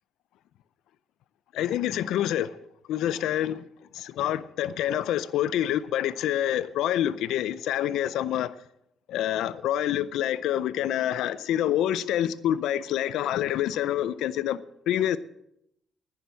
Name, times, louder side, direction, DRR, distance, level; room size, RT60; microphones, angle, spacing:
voice 1, 1.5-2.5 2.9-3.6 3.9-8.5 9.1-14.6 14.9-15.2, left 11 dB, 85° left, 0.5 m, -27 dB
10.5 x 10.0 x 7.7 m
cardioid pair, 90°, 0 cm